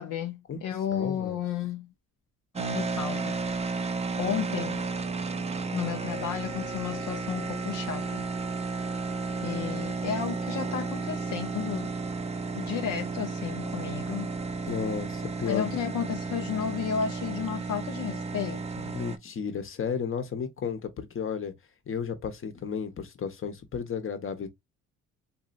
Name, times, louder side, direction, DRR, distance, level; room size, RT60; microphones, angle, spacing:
voice 1, 0.0-1.9 2.6-3.4 4.2-4.8 5.7-8.2 9.4-11.9 12.5-14.3 15.5-19.0, left 8 dB, 70° left, 0.7 m, -33 dB
voice 2, 0.9-1.4 5.4-5.5 14.7-15.7 18.9-21.5 21.9-24.5, left 6 dB, 45° left, 1.0 m, -33 dB
sound 1, 2.6-19.2, right 4 dB, 20° right, 0.5 m, -33 dB
4.1 x 2.6 x 2.4 m
cardioid pair, 90°, 30 cm